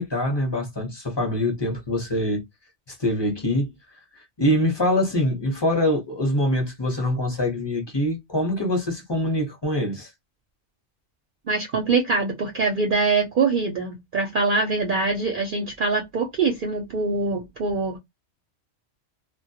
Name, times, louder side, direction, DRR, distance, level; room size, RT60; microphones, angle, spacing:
voice 1, 0.0-2.4 2.9-3.7 4.1-10.1, left 1 dB, 25° left, 0.7 m, -24 dB
voice 2, 11.5-18.0, right 4 dB, 55° right, 0.6 m, -23 dB
2.2 x 2.1 x 2.7 m
omnidirectional pair, 1.3 m